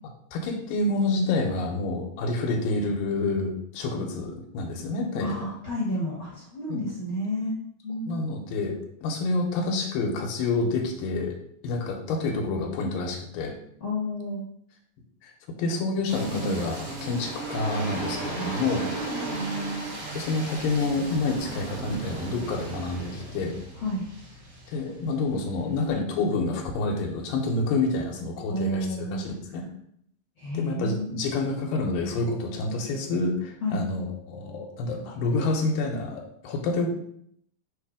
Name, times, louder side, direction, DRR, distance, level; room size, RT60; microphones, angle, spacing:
voice 1, 0.3-5.5 6.7-6.8 8.1-11.4 11.6-13.5 15.2-15.3 15.6-16.7 17.0-18.8 20.2-23.6 24.7-29.6 30.5-36.9, left 3 dB, 85° left, 1 dB, 2.5 m, -28 dB
voice 2, 5.2-7.5 7.8-8.4 13.8-14.4 16.3-16.6 18.4-19.8 23.8-24.0 28.5-29.2 30.4-31.3 33.6-33.8, equal, 60° left, -5 dB, 1.3 m, -31 dB
sound 1, 16.1-25.9, right 3 dB, 70° right, 3.4 m, -36 dB
6.5 x 3.1 x 4.8 m, 0.69 s
omnidirectional pair, 4.0 m